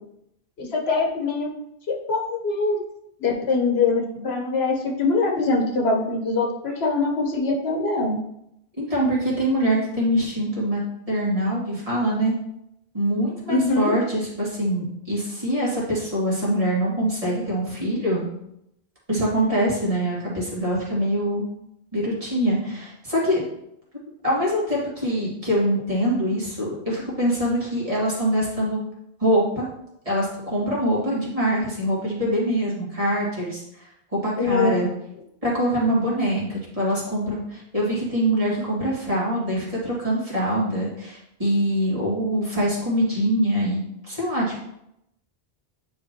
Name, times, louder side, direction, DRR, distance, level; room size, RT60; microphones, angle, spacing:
voice 1, 0.6-1.5 1.9-2.8 3.2-8.2 13.5-13.9 34.4-34.8, left 3 dB, 85° left, 1 dB, 1.2 m, -23 dB
voice 2, 8.8-10.8 11.1-12.3 12.9-18.3 19.1-21.5 21.9-23.4 24.2-28.8 29.2-29.7 30.1-34.9 35.4-44.6, equal, 35° right, -6 dB, 2.1 m, -24 dB
9.1 x 3.7 x 2.9 m, 0.81 s
omnidirectional pair, 1.0 m